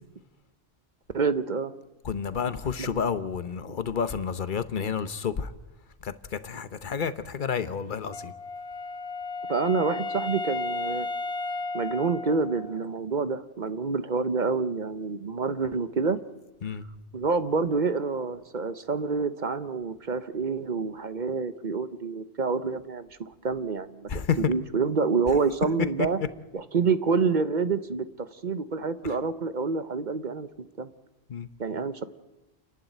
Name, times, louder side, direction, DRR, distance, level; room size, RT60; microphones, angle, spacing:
voice 1, 1.1-1.7 2.8-2.9 9.5-11.1 11.7-16.2 16.7-16.8 17.1-24.1 24.4-26.2 26.5-30.9 31.6-32.0, right 4 dB, 50° right, 12 dB, 1.0 m, -27 dB
voice 2, 2.0-5.5 6.0-8.3 16.6-16.9 24.1-24.4 31.3-31.5, left 6 dB, 50° left, 13 dB, 1.1 m, -30 dB
Wind instrument woodwind instrument, 8.1-12.9, left 3 dB, 70° left, 1.9 m, -34 dB
28.5 x 11.5 x 9.2 m, 1.0 s
omnidirectional pair, 1.1 m